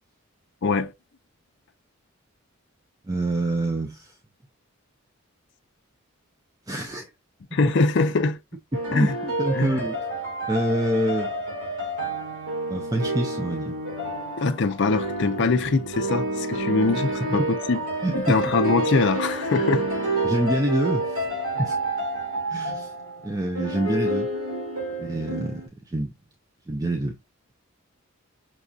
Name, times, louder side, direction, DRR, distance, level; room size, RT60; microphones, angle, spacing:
voice 1, 0.6-0.9 7.5-8.4 8.9-9.2 9.5-9.8 14.4-17.8 18.1-19.9 21.6-21.7, left 3 dB, 50° left, 0.4 m, -23 dB
voice 2, 3.1-4.1 6.7-7.1 8.7-10.0 10.5-11.3 12.7-13.8 17.4-17.5 18.0-18.2 20.2-21.2 21.6-21.7 22.5-22.9 23.2-24.3 25.0-25.6 25.9-26.1 26.7-27.2, right 1 dB, 15° right, 0.4 m, -26 dB
sound 1, 8.7-25.7, right 2 dB, 80° right, 2.6 m, -29 dB
5.9 x 2.6 x 2.3 m
head